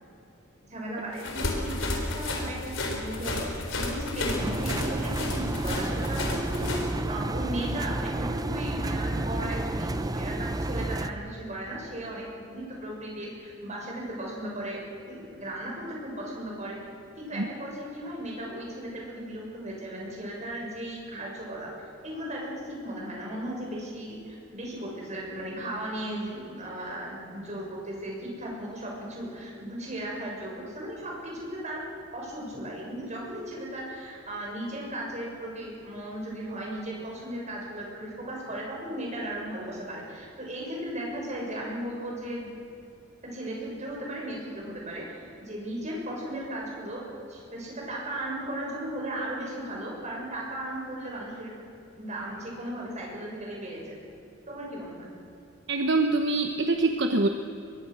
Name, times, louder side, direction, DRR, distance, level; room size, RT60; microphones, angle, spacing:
voice 1, 0.7-3.5 3.7-14.8 15.1-16.8 17.2-21.7 22.0-31.8 32.1-42.5 43.2-51.6 52.0-53.9 54.5-55.1, right 1 dB, 35° right, -2 dB, 7.0 m, -36 dB
sound 1, 1.2-6.9, left 2 dB, 65° left, 4.3 m, -32 dB
Engine, 4.4-11.1, right 2 dB, 20° right, 0.7 m, -31 dB
voice 2, 55.7-57.3, right 2 dB, 60° right, 5 dB, 1.1 m, -24 dB
23.5 x 21.5 x 6.5 m, 2.7 s
head